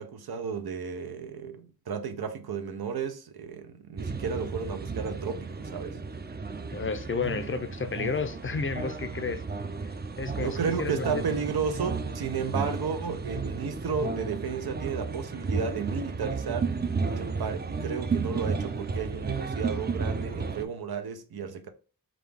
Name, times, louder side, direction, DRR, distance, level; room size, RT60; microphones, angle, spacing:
voice 1, 0.0-6.0 10.4-16.7 17.0-21.7, right 6 dB, 85° right, 0.6 m, -33 dB
sound 1, 4.0-20.6, right 4 dB, 30° right, 0.4 m, -33 dB
voice 2, 6.7-9.4 9.8-11.2, left 5 dB, 35° left, 0.5 m, -32 dB
3.8 x 2.3 x 3.3 m
wide cardioid pair, 60°, 37 cm